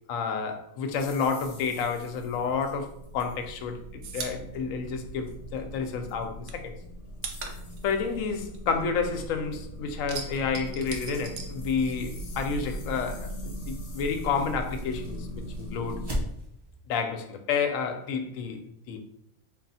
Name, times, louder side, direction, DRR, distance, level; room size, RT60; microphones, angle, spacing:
voice 1, 0.1-6.7 7.8-15.3 15.6-16.0 16.9-18.6 18.9-19.0, left 5 dB, 80° left, 6 dB, 1.0 m, -30 dB
sound 1, 0.9-16.1, equal, 55° left, 0.9 m, -40 dB
sound 2, 3.0-5.8 6.1-9.4 9.7-12.3 12.5-13.7, right 5 dB, 70° right, 0.9 m, -41 dB
sound 3, 11.2-16.8, equal, 25° right, 0.7 m, -40 dB
3.4 x 2.4 x 4.0 m, 0.75 s
omnidirectional pair, 1.4 m